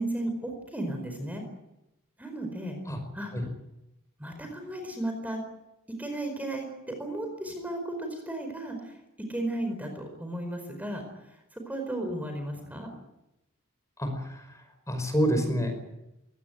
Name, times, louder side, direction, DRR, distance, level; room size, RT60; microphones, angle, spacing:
voice 1, 0.0-1.4 2.2-2.8 3.1-3.3 4.2-5.4 6.0-9.0 9.3-12.9, right 1 dB, 5° right, 4 dB, 4.7 m, -34 dB
voice 2, 14.0-15.8, equal, 15° left, 6 dB, 5.3 m, -28 dB
23.5 x 18.5 x 9.5 m, 0.89 s
head